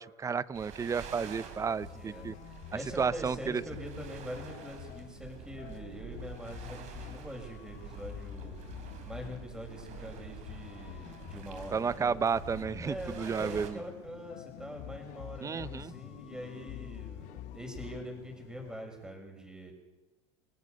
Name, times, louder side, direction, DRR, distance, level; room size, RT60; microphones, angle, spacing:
voice 1, 0.0-2.3 3.0-3.6 11.7-13.8 15.4-15.9, right 6 dB, 20° right, 18 dB, 0.8 m, -32 dB
sound 1, 0.5-13.7, right 8 dB, 50° right, 4.6 m, -48 dB
sound 2, 1.1-18.8, left 13 dB, 75° left, 2.1 m, -54 dB
voice 2, 1.6-8.6 9.0-12.2 12.8-19.7, equal, 5° right, 3 dB, 6.9 m, -44 dB
sound 3, 1.8-19.1, left 13 dB, 55° left, 1.1 m, -48 dB
29.5 x 19.0 x 6.9 m, 1.1 s
supercardioid pair, 110°, 15 cm